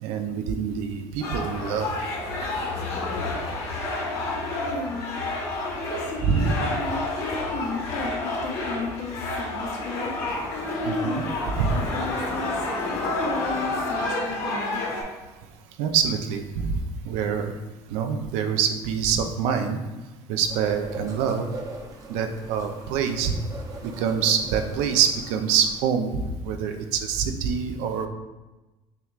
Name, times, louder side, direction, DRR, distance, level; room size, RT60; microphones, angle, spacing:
voice 1, 0.0-1.9 6.2-6.5 10.9-11.2 11.6-11.8 15.8-16.8 17.0-17.5 17.9-19.8 20.3-21.5 22.1-23.4 23.8-28.1, right 7 dB, 80° right, 6 dB, 0.5 m, -25 dB
sound 1, 1.2-15.0, left 2 dB, 60° left, 1.4 m, -29 dB
voice 2, 4.0-5.2 5.6-14.8, left 2 dB, 80° left, -1 dB, 1.2 m, -34 dB
sound 2, 20.5-25.8, right 3 dB, 30° right, 0.7 m, -40 dB
6.7 x 3.0 x 2.4 m, 1.1 s
cardioid pair, 135°, 11 cm